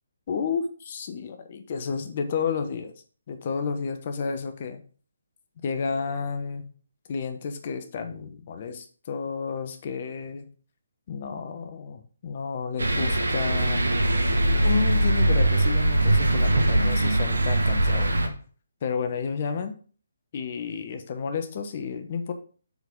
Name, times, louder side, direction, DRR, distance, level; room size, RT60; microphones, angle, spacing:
voice 1, 0.3-2.9 3.3-4.8 5.6-6.6 7.1-10.5 11.1-13.9 14.5-18.4 18.8-19.8 20.3-22.3, left 6 dB, 40° left, 7 dB, 1.0 m, -31 dB
sound 1, 12.8-18.3, right 1 dB, 80° right, 1.2 m, -22 dB
7.1 x 4.0 x 5.2 m, 0.41 s
figure-of-eight pair, 145°, 0 cm